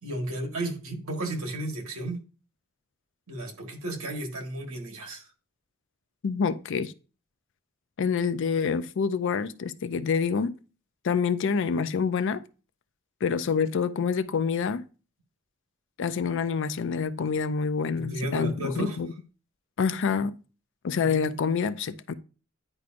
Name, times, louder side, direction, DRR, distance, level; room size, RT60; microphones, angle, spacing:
voice 1, 0.0-2.2 3.3-5.2 18.0-19.0 20.9-21.4, right 1 dB, 80° right, 1.6 m, -33 dB
voice 2, 6.2-6.9 8.0-10.5 11.0-12.4 13.2-14.8 16.0-19.1 19.8-20.3 20.8-22.1, left 6 dB, 60° left, 0.4 m, -27 dB
9.7 x 4.7 x 2.5 m
head